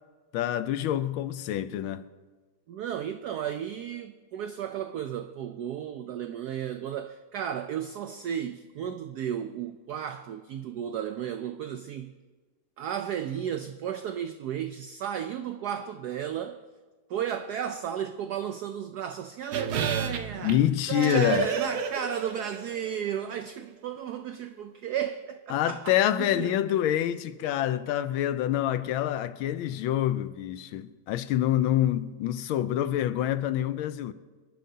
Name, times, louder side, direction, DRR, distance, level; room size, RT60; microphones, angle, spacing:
voice 1, 0.3-2.0 20.4-21.5 25.5-34.1, left 12 dB, 80° left, 1.4 m, -26 dB
voice 2, 2.7-12.1 12.8-16.6 17.1-20.6 20.9-26.5, right 9 dB, 90° right, 0.8 m, -34 dB
sound 1, 19.5-23.0 23.3-23.4, right 7 dB, 60° right, 0.9 m, -31 dB
26.0 x 11.0 x 2.8 m
omnidirectional pair, 2.3 m